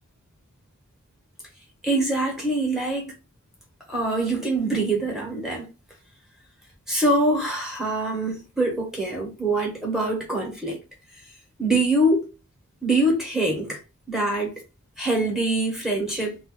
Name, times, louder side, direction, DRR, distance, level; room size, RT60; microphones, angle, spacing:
voice 1, 1.8-3.1 3.9-5.7 6.9-10.8 11.6-12.3 12.8-13.8 14.1-14.6 15.0-16.4, right 2 dB, ahead, 0.9 m, -24 dB
2.6 x 2.3 x 3.6 m
head